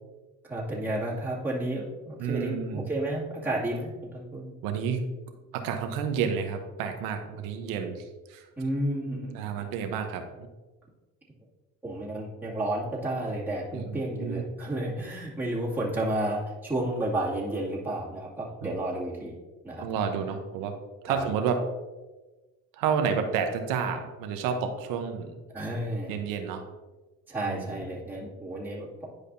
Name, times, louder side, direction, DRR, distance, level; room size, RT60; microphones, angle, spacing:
voice 1, 0.4-4.5 8.6-9.4 11.8-19.3 19.6-19.8 21.1-21.3 25.5-26.1 27.3-28.9, right 1 dB, 5° right, -8 dB, 2.3 m, -31 dB
voice 2, 2.2-2.9 4.6-5.0 5.5-8.5 9.3-10.5 13.7-14.4 18.6-18.8 19.8-20.7 21.0-21.6 22.7-25.4 26.1-26.6 27.5-27.8, right 6 dB, 85° right, 6 dB, 1.0 m, -30 dB
10.5 x 4.9 x 2.7 m, 1.2 s
supercardioid pair, 85°, 33 cm